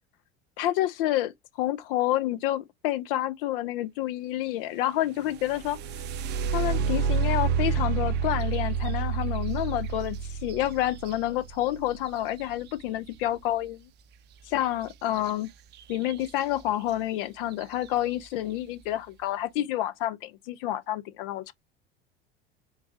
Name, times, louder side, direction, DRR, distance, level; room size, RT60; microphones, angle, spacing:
voice 1, 0.6-1.3 1.6-5.8 6.5-13.9 14.5-15.5 15.9-21.5, left 13 dB, 55° left, 0.6 m, -29 dB
sound 1, 5.3-13.1 15.2-15.3 15.7-16.3 16.9-17.0 17.5-17.9, right 6 dB, 30° right, 0.5 m, -29 dB
4.0 x 2.3 x 3.7 m
figure-of-eight pair, 75°, 33 cm